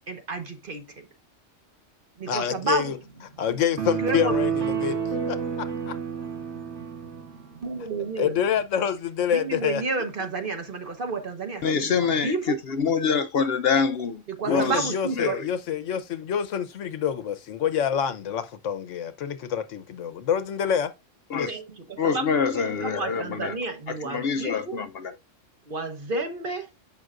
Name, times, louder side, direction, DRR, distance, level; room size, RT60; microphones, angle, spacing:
voice 1, 0.1-0.8 2.2-2.9 4.0-4.3 7.6-8.3 9.3-12.6 14.3-15.4 21.5-22.2 22.5-24.8 25.7-26.7, right 4 dB, 45° right, 1.2 m, -31 dB
voice 2, 2.3-3.0 3.4-5.0 5.3-5.9 8.2-9.8 14.4-20.9 21.3-21.6, left 8 dB, 75° left, 1.1 m, -27 dB
sound 1, 2.6-8.7, right 5 dB, 85° right, 2.2 m, -49 dB
sound 2, 3.8-7.3, right 7 dB, 65° right, 1.7 m, -29 dB
voice 3, 11.6-14.2 14.5-14.9 15.2-15.4 21.3-21.5 22.0-23.5 23.9-25.1, left 6 dB, 60° left, 0.7 m, -25 dB
7.6 x 5.7 x 2.4 m
omnidirectional pair, 1.3 m